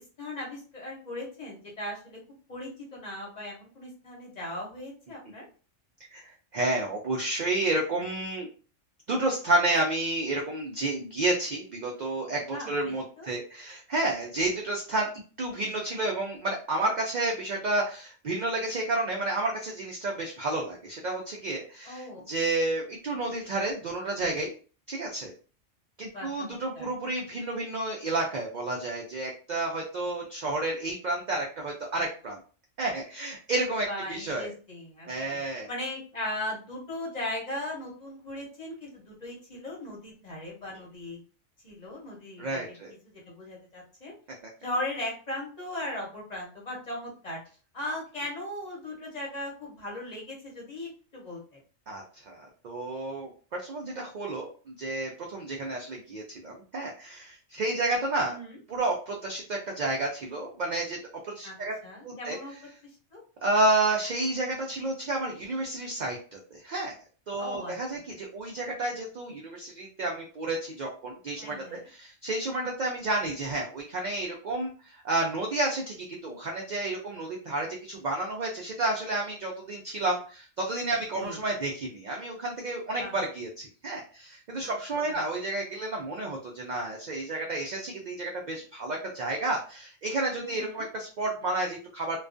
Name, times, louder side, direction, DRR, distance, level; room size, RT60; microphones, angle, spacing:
voice 1, 0.2-2.2 2.5-5.5 12.5-13.3 21.8-22.2 26.1-26.9 33.9-35.1 35.7-41.2 41.6-42.6 43.3-44.1 44.6-47.4 47.7-51.4 58.2-58.6 61.4-61.5 61.8-62.5 63.1-63.2 67.4-67.7 71.4-71.9 81.1-81.4 83.0-83.1 84.6-84.7 85.0-85.2 90.4-90.9, left 1 dB, 40° left, -3 dB, 0.8 m, -38 dB
voice 2, 6.1-8.5 9.1-15.1 15.4-24.5 24.9-25.3 26.0-32.4 32.8-34.5 35.1-35.7 42.4-42.9 51.9-58.4 58.7-61.0 61.3-61.8 62.0-62.4 63.4-67.0 67.3-92.2, right 2 dB, 75° right, 0 dB, 0.4 m, -31 dB
2.3 x 2.2 x 2.4 m, 0.38 s
omnidirectional pair, 1.3 m